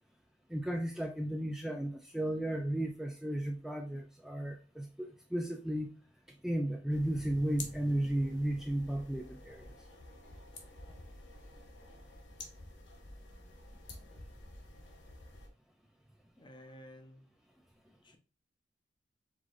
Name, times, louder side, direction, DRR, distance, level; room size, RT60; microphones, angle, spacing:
voice 1, 0.5-5.9 6.4-9.6, right 1 dB, ahead, 2 dB, 0.4 m, -34 dB
sound 1, 6.9-15.5, left 2 dB, 80° left, 1.2 m, -50 dB
voice 2, 16.4-17.2 18.0-18.2, left 1 dB, 25° left, 6 dB, 0.7 m, -53 dB
5.0 x 3.7 x 2.5 m, 0.37 s
head